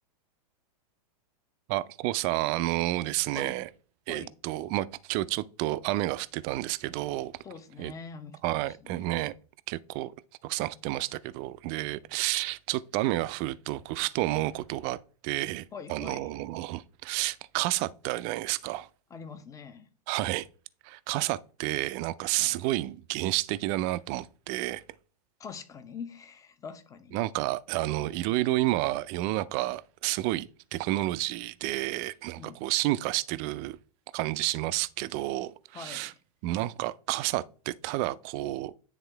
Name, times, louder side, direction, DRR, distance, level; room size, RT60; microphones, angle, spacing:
voice 1, 1.7-3.7 4.1-7.3 7.8-7.9 8.4-9.3 9.7-10.1 10.4-15.0 15.2-18.9 20.1-20.5 20.8-24.8 27.1-33.8 34.1-36.1 36.4-38.7, right 17 dB, 35° right, 0.4 m, -30 dB
voice 2, 7.4-9.1 15.7-16.4 19.1-19.9 22.4-22.6 25.4-27.2 32.4-32.6 35.7-36.2, left 5 dB, 15° left, 0.7 m, -44 dB
9.6 x 3.6 x 3.4 m
hypercardioid pair, 110°, 21 cm